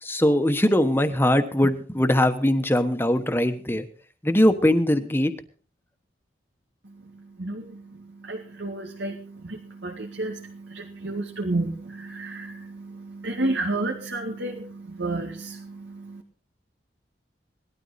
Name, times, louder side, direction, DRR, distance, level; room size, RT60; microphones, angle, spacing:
voice 1, 0.0-3.8 4.2-5.3, left 1 dB, 10° left, 9 dB, 1.2 m, -21 dB
voice 2, 6.8-16.2, right 2 dB, 90° right, 0 dB, 2.1 m, -32 dB
19.0 x 13.0 x 4.2 m, 0.41 s
head